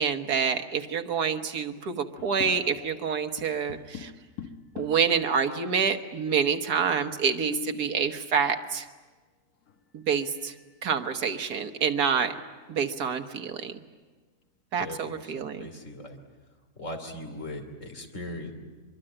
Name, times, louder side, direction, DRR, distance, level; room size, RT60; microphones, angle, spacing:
voice 1, 0.0-4.1 4.8-8.9 9.9-10.5 10.8-12.3 12.7-13.7 14.7-15.7, right 6 dB, 85° right, 7 dB, 1.8 m, -27 dB
sound 1, 2.2-3.0 3.4-5.2 5.9-6.0 6.2-6.3 7.0-7.9 9.7-9.8 10.3-10.7 11.2-11.3 11.8-12.7, left 8 dB, 75° left, 1.8 m, -43 dB
voice 2, 14.8-16.2 16.8-18.5, left 1 dB, 55° left, 4 dB, 3.3 m, -39 dB
24.0 x 23.5 x 8.9 m, 1.3 s
omnidirectional pair, 1.6 m